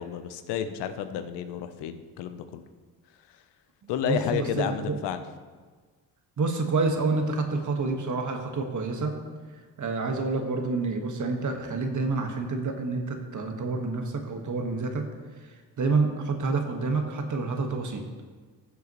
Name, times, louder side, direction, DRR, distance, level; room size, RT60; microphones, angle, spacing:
voice 1, 0.0-2.6 3.3-3.4 3.9-5.2, left 9 dB, 90° left, 10 dB, 0.8 m, -31 dB
voice 2, 4.0-5.0 6.4-9.2 9.8-15.0 15.4-18.0, right 3 dB, 45° right, 4 dB, 1.5 m, -28 dB
15.0 x 6.9 x 3.1 m, 1.5 s
cardioid pair, 70°, 40 cm